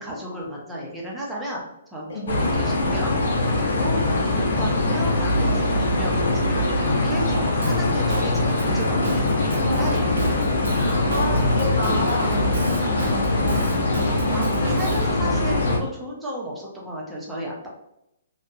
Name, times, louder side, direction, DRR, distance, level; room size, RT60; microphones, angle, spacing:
voice 1, 0.0-1.6 1.9-3.1 3.5-4.0 4.6-6.2 6.5-10.2 14.3-17.7, equal, 5° right, -4 dB, 0.5 m, -33 dB
sound 1, 2.3-15.8, left 2 dB, 85° left, 0.5 m, -22 dB
Drum kit / Drum, 7.6-15.1, right 2 dB, 85° right, 0.7 m, -33 dB
voice 2, 9.6-13.9, left 2 dB, 60° left, -2 dB, 1.4 m, -31 dB
2.7 x 2.1 x 2.3 m, 0.83 s
hypercardioid pair, 165°, 0 cm